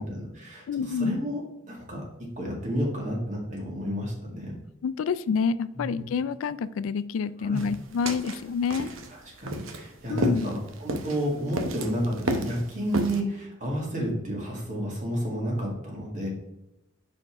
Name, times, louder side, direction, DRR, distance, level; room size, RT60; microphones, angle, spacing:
voice 1, 0.0-4.5 5.8-6.0 7.4-7.7 9.1-16.3, equal, 40° right, -2 dB, 2.0 m, -31 dB
voice 2, 0.7-1.2 4.8-8.9 10.1-10.5, left 5 dB, 90° left, 16 dB, 0.3 m, -28 dB
sound 1, 7.6-13.2, right 1 dB, 85° right, 0.8 m, -32 dB
5.3 x 4.5 x 4.7 m, 0.89 s
head